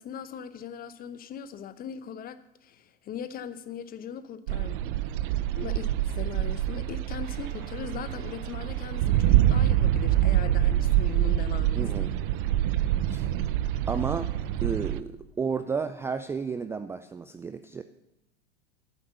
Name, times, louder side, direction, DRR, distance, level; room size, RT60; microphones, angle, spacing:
voice 1, 0.0-4.8 5.5-12.1, left 8 dB, 30° left, 0.9 m, -39 dB
sound 1, 4.5-15.0, right 12 dB, 55° right, 0.7 m, -26 dB
Guitar, 7.2-15.7, right 3 dB, 30° right, 2.7 m, -54 dB
voice 2, 11.8-12.1 13.1-13.3 13.9-14.3 14.6-17.8, right 5 dB, 10° right, 0.3 m, -32 dB
11.0 x 9.2 x 6.8 m
hypercardioid pair, 95°, 31 cm